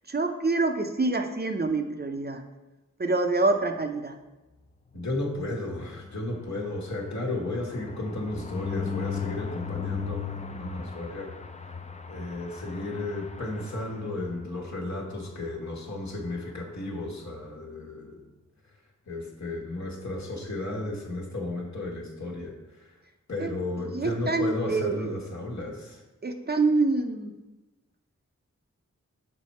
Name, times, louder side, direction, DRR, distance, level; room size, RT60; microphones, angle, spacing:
voice 1, 0.1-2.4 3.0-4.2 23.4-23.5 23.9-25.2 26.2-27.3, right 3 dB, 35° right, 5 dB, 0.6 m, -26 dB
voice 2, 4.9-10.2 10.6-11.3 12.1-18.2 19.1-22.9 23.3-26.0, left 2 dB, 65° left, -1 dB, 1.4 m, -34 dB
sound 1, 5.8-14.6 15.0-15.2 15.4-15.5 15.8-16.1, left 6 dB, 25° left, 0.5 m, -37 dB
6.5 x 4.6 x 4.2 m, 1.1 s
wide cardioid pair, 55°, 30 cm